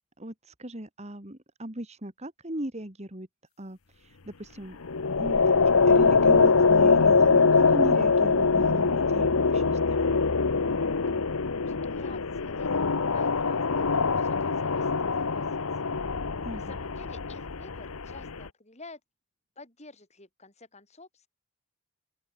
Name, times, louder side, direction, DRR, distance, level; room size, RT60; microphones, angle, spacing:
voice 1, 0.2-3.3 3.6-4.8 5.2-5.4 5.9-10.1 16.4-16.8, right 1 dB, 30° right, 2.5 m, -37 dB
sound 1, 4.8-18.5, left 4 dB, 80° left, 1.0 m, -23 dB
voice 2, 11.5-15.6 16.5-19.0 19.6-21.3, left 3 dB, 30° left, 5.4 m, -50 dB
open air
head